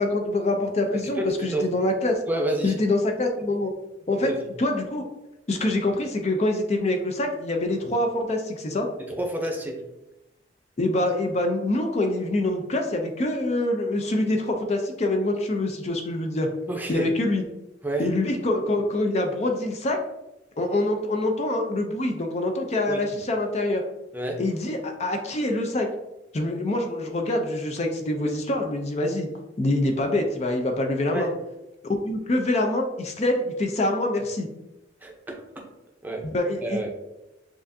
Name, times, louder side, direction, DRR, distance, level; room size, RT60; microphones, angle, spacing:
voice 1, 0.0-2.2 2.6-3.7 4.1-4.3 4.6-5.1 5.5-8.9 10.8-16.5 16.9-17.4 18.0-20.0 20.6-23.8 24.4-25.9 26.3-29.3 29.6-31.3 32.0-34.5 36.2-36.8, left 1 dB, 35° left, 3 dB, 0.5 m, -25 dB
voice 2, 1.2-1.6 2.2-2.7 4.2-4.5 9.1-9.8 16.7-17.1 17.8-18.1 22.9-23.0 24.1-24.4 31.1-31.3 35.0-35.4 36.0-36.2 36.6-36.9, right 1 dB, 10° right, 0 dB, 0.6 m, -29 dB
7.3 x 2.5 x 2.6 m, 0.97 s
head